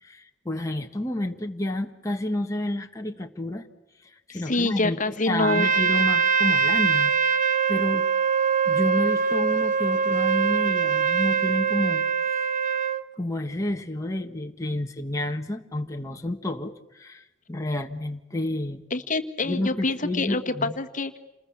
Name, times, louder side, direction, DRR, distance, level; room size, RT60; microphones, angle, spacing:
voice 1, 0.0-3.7 4.3-7.1 7.4-8.0 8.7-12.0 12.3-12.4 13.2-18.8 19.4-20.7, left 1 dB, 15° left, 2 dB, 1.4 m, -30 dB
voice 2, 4.3-5.7 18.9-21.2, left 2 dB, 45° left, 8 dB, 1.5 m, -26 dB
Trumpet, 5.4-13.0, right 6 dB, 40° right, 1.1 m, -23 dB
28.5 x 21.0 x 8.6 m, 0.94 s
head